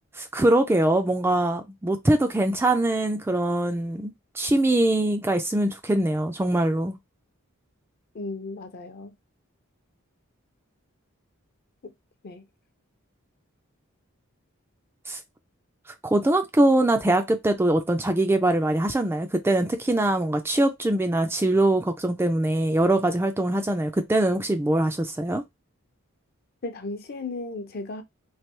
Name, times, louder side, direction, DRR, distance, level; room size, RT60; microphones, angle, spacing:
voice 1, 0.2-7.0 15.1-15.2 16.0-25.4, right 1 dB, 10° right, 0.3 m, -23 dB
voice 2, 8.1-9.1 11.8-11.9 12.2-12.5 26.6-28.0, left 2 dB, 45° left, 0.6 m, -35 dB
3.2 x 2.6 x 2.9 m
head